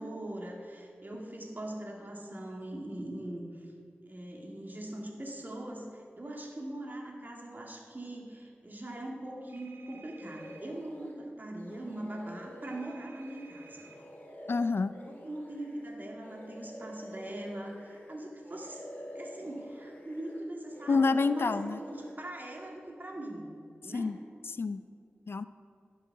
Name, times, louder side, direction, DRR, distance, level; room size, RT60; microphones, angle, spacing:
voice 1, 0.0-3.7 4.1-13.9 15.1-18.8 19.2-23.5 23.8-24.2, right 1 dB, 45° right, 0 dB, 1.8 m, -41 dB
sound 1, 9.5-10.6 12.6-14.0, right 6 dB, 70° right, 1.2 m, -56 dB
sound 2, 10.2-11.2 11.6-18.2 18.4-20.4 20.7-22.1, equal, 40° left, 2.1 m, -48 dB
voice 2, 14.5-14.9 20.9-21.8 23.9-24.2 24.5-24.8 25.3-25.4, left 4 dB, 60° left, 13 dB, 0.3 m, -28 dB
15.5 x 5.5 x 4.6 m, 2.3 s
cardioid pair, 45°, 4 cm